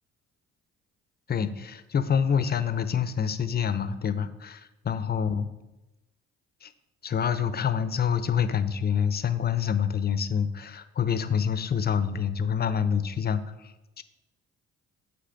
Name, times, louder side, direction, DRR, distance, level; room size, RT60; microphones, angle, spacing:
voice 1, 1.3-5.5 6.6-6.7 7.0-14.0, left 7 dB, 30° left, 12 dB, 0.6 m, -27 dB
8.0 x 3.1 x 5.7 m, 1.0 s
hypercardioid pair, 60°, 30 cm